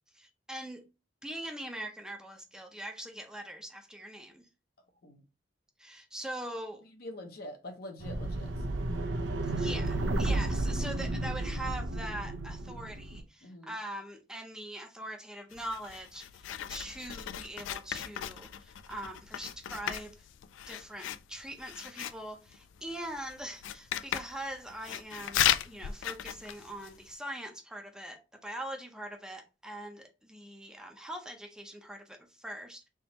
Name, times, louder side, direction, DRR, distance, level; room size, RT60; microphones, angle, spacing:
voice 1, 0.1-0.8 1.2-4.5 5.8-6.8 9.4-20.1 20.7-32.9, right 1 dB, 5° right, 0.6 m, -42 dB
voice 2, 7.0-8.5 13.4-13.7, left 1 dB, 55° left, 0.8 m, -44 dB
sound 1, 8.0-13.2, right 2 dB, 85° right, 0.7 m, -32 dB
Writing, 15.5-27.1, left 11 dB, 90° left, 0.3 m, -36 dB
3.5 x 2.9 x 4.1 m
head